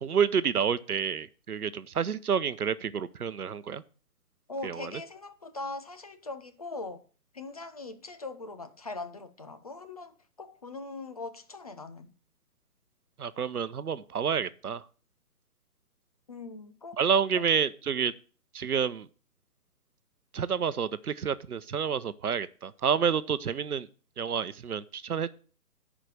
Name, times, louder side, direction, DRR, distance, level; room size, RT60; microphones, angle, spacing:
voice 1, 0.0-3.8 4.6-4.9 13.2-14.8 17.0-18.1 18.5-19.1 20.3-23.9 24.2-25.3, right 7 dB, 75° right, 0.8 m, -29 dB
voice 2, 4.5-7.0 7.3-12.1 16.3-17.0 17.3-17.4, left 3 dB, 25° left, 0.5 m, -41 dB
10.5 x 5.0 x 6.2 m
figure-of-eight pair, 135°, 45 cm